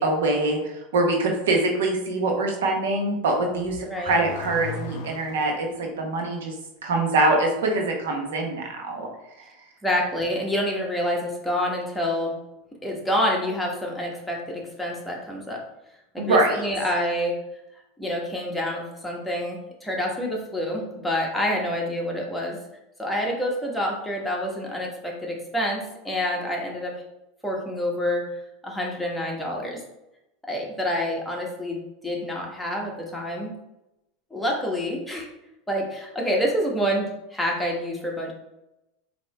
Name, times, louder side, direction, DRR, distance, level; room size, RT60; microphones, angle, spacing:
voice 1, 0.0-6.5 6.8-9.1 16.2-16.7, right 2 dB, 80° right, 2 dB, 1.0 m, -24 dB
Car / Accelerating revving vroom, 3.5-5.8, left 5 dB, 55° left, 0.6 m, -37 dB
voice 2, 9.8-12.3 12.8-15.6 16.1-17.4 18.0-22.6 23.0-26.9 27.4-28.2 28.6-29.8 30.5-33.5 34.3-35.3 35.7-38.3, equal, 5° left, -2 dB, 1.1 m, -27 dB
4.2 x 2.8 x 3.3 m, 0.90 s
hypercardioid pair, 110°, 0 cm